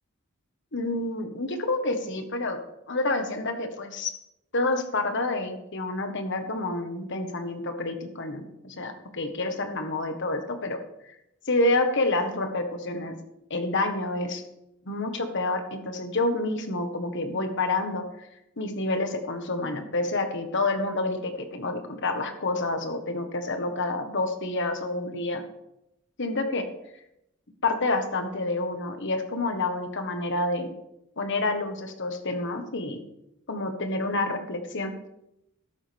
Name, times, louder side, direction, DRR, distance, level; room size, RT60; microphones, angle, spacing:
voice 1, 0.7-2.6 2.9-4.1 4.5-10.8 11.5-13.1 13.5-14.4 14.9-18.3 18.6-25.4 26.2-26.7 27.6-30.7 31.2-33.0 33.5-34.9, left 2 dB, 60° left, 6 dB, 1.5 m, -28 dB
13.0 x 12.0 x 3.5 m, 0.85 s
head